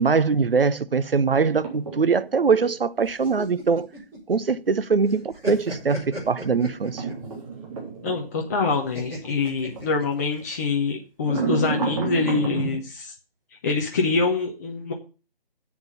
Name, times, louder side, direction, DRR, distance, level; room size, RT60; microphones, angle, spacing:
voice 1, 0.0-3.9 4.3-7.0, right 5 dB, 70° right, 0.8 m, -22 dB
sound 1, 1.3-2.7 4.8-9.9 10.3-10.5 11.2-12.8, right 4 dB, 35° right, 3.4 m, -32 dB
sound 2, 3.0-4.8 5.1-7.3 8.9-10.4, equal, 10° right, 4.3 m, -36 dB
voice 2, 8.0-13.1 13.6-14.9, left 4 dB, 15° left, 0.8 m, -25 dB
7.8 x 7.1 x 8.2 m
figure-of-eight pair, 145°, 30 cm